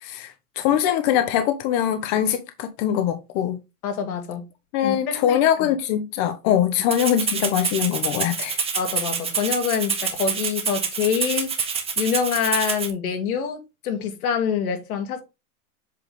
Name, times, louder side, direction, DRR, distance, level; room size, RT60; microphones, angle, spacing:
voice 1, 0.0-3.6 4.7-8.6, left 10 dB, 35° left, 0.7 m, -22 dB
voice 2, 3.8-4.4 4.8-5.7 8.8-11.5 12.0-15.2, left 7 dB, 65° left, 1.9 m, -26 dB
Rattle (instrument), 6.9-12.9, right 6 dB, 10° right, 0.8 m, -27 dB
7.6 x 3.7 x 3.5 m
hypercardioid pair, 120°, 46 cm